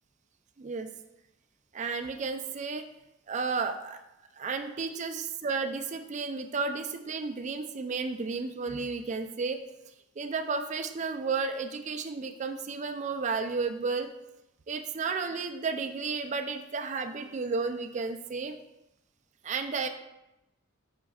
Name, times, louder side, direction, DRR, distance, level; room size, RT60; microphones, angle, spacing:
voice 1, 0.6-0.9 1.7-2.8 3.3-4.0 4.3-9.6 10.2-14.1 14.7-18.5 19.4-19.9, right 4 dB, 35° right, 7 dB, 0.4 m, -32 dB
8.7 x 5.2 x 2.3 m, 0.92 s
head